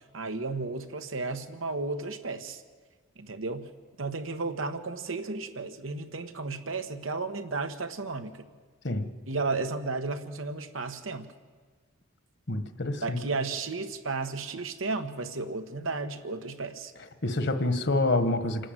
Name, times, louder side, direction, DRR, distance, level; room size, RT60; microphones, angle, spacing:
voice 1, 0.1-2.6 3.2-3.7 4.0-8.5 9.3-11.3 13.0-16.9, right 3 dB, 80° right, 8 dB, 1.4 m, -33 dB
voice 2, 12.5-13.3 17.2-18.7, left 2 dB, 60° left, 10 dB, 1.5 m, -27 dB
27.0 x 12.5 x 9.2 m, 1.5 s
head